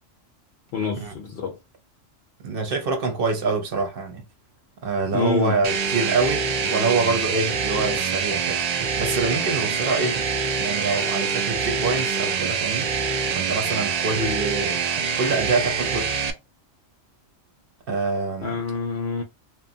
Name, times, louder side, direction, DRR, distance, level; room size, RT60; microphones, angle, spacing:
voice 1, 0.7-1.6 5.1-5.6 18.4-19.2, left 5 dB, 65° left, 0.8 m, -27 dB
voice 2, 2.4-4.3 4.8-8.6 9.0-10.2 10.6-12.9 13.4-14.8 15.2-16.1 17.9-18.5, right 3 dB, 55° right, 0.9 m, -25 dB
sound 1, 5.6-16.3, right 6 dB, 85° right, 0.3 m, -25 dB
2.9 x 2.2 x 2.6 m
omnidirectional pair, 1.2 m